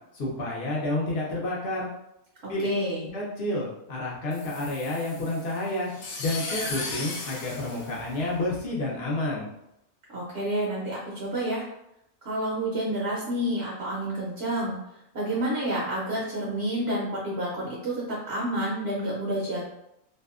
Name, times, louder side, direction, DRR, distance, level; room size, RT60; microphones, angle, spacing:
voice 1, 0.1-1.9 2.5-2.7 3.1-5.9 6.2-9.5, left 2 dB, 55° left, -4 dB, 0.8 m, -29 dB
voice 2, 2.4-3.0 10.1-11.6 12.2-14.8 15.1-19.7, right 1 dB, 55° right, -6 dB, 0.8 m, -29 dB
sound 1, 4.3-8.7, left 3 dB, 75° left, 1.0 m, -37 dB
2.7 x 2.2 x 2.3 m, 0.83 s
omnidirectional pair, 1.5 m